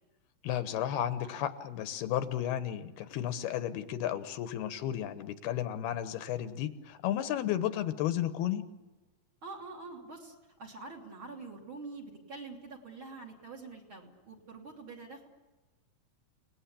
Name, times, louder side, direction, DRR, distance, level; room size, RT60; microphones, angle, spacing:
voice 1, 0.4-8.6, left 11 dB, 85° left, 10 dB, 3.1 m, -33 dB
voice 2, 9.4-10.3 10.6-15.3, right 3 dB, 35° right, 3 dB, 3.2 m, -45 dB
30.0 x 19.0 x 8.6 m, 1.2 s
omnidirectional pair, 4.4 m